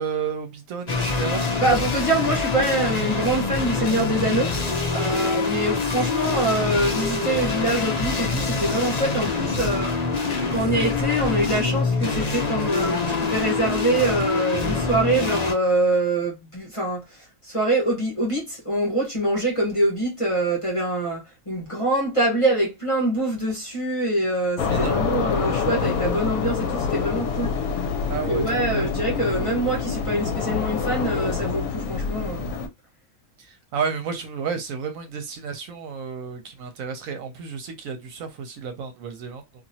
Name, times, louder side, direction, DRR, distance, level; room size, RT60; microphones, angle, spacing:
voice 1, 0.0-1.5 5.1-5.3 24.6-25.0 28.1-28.9 33.4-39.4, right 6 dB, 75° right, 1.0 m, -32 dB
sound 1, 0.9-15.5, left 4 dB, 45° left, 0.6 m, -25 dB
voice 2, 1.6-4.5 4.9-10.0 10.5-27.6 28.1-32.5, right 1 dB, 25° left, 1.0 m, -24 dB
sound 2, 24.6-32.7, left 6 dB, 80° left, 1.1 m, -26 dB
2.9 x 2.6 x 2.7 m
omnidirectional pair, 1.5 m